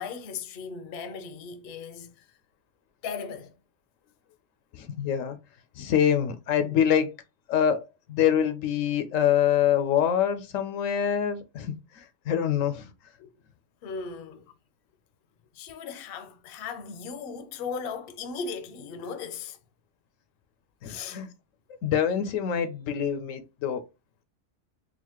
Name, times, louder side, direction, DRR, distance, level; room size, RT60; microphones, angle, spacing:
voice 1, 0.0-2.4 3.0-3.6 13.8-14.5 15.5-19.6 20.8-21.2, left 5 dB, 55° left, 0.7 m, -37 dB
voice 2, 4.8-5.4 5.8-7.2 7.5-12.9 20.8-21.3 21.8-23.8, left 9 dB, 80° left, 1.0 m, -25 dB
4.0 x 2.4 x 2.9 m
omnidirectional pair, 1.3 m